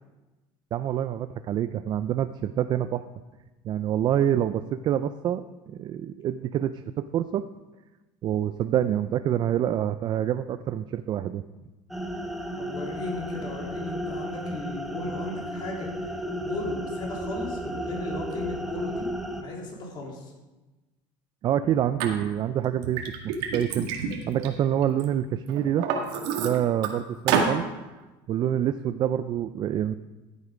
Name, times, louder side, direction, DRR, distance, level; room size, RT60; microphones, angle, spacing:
voice 1, 0.7-3.0 3.6-6.7 7.1-7.4 8.2-11.4 21.4-23.9 24.3-25.8 26.4-27.6 28.3-30.0, right 10 dB, 40° right, 11 dB, 0.4 m, -26 dB
sound 1, 11.9-19.4, equal, ahead, 0.9 m, -33 dB
voice 2, 12.6-15.9 16.4-19.1 19.4-20.3, left 2 dB, 40° left, -1 dB, 3.3 m, -36 dB
Liquid, 22.0-22.1 22.6-25.0 25.5-26.9 27.3-27.6, right 6 dB, 80° right, 1.9 m, -28 dB
14.0 x 8.3 x 5.0 m, 1.1 s
cardioid pair, 140°, 12 cm